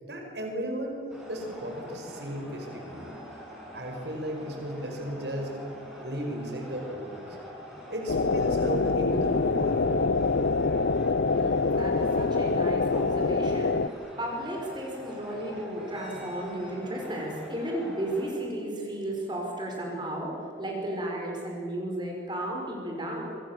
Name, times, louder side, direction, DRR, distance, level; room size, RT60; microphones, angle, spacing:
voice 1, 0.1-1.0 1.3-3.1 3.7-5.5 6.0-7.4 7.9-9.8, equal, 70° right, 2 dB, 5.4 m, -35 dB
sound 1, 1.1-18.3, equal, 5° right, 7.6 m, -45 dB
sound 2, 8.1-13.9, left 4 dB, 75° left, 0.6 m, -25 dB
voice 2, 11.3-13.8 14.2-23.2, right 1 dB, 25° right, -1 dB, 5.5 m, -34 dB
26.0 x 26.0 x 7.5 m, 2.5 s
head